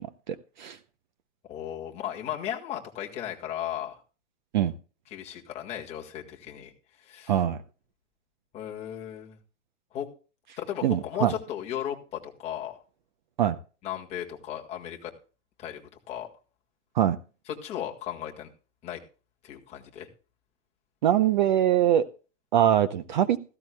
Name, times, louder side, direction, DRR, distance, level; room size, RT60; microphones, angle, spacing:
voice 1, 0.3-0.8 4.5-4.7 7.3-7.6 10.8-11.3 13.4-13.6 17.0-17.2 21.0-22.1 22.5-23.4, right 11 dB, 40° right, 13 dB, 0.6 m, -23 dB
voice 2, 1.5-4.0 5.1-7.4 8.5-9.4 9.9-10.1 10.6-12.8 13.8-15.1 15.6-15.8 16.1-16.3 17.5-18.5 18.8-19.0 19.4-20.1, left 10 dB, 15° left, 0 dB, 1.7 m, -36 dB
16.5 x 15.0 x 2.2 m, 0.35 s
hypercardioid pair, 170°, 36 cm